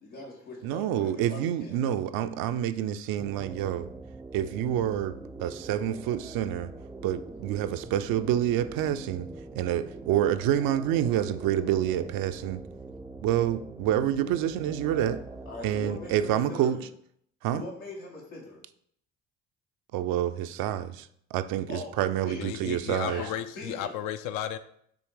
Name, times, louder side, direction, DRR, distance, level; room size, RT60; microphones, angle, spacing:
voice 1, 0.0-1.7 15.4-16.8 17.5-18.6 21.7-22.5 23.0-23.9, left 2 dB, 90° left, -4 dB, 1.6 m, -41 dB
voice 2, 0.6-3.9 4.3-6.7 7.0-9.3 9.6-12.6 13.2-15.2 15.6-16.8 17.4-17.6 19.9-23.2, right 11 dB, 60° right, 11 dB, 0.5 m, -28 dB
sound 1, 3.2-16.4, right 3 dB, 10° right, 0.4 m, -43 dB
voice 3, 22.4-24.6, left 10 dB, 55° left, 11 dB, 0.5 m, -34 dB
6.3 x 3.2 x 4.7 m, 0.68 s
hypercardioid pair, 55°, 40 cm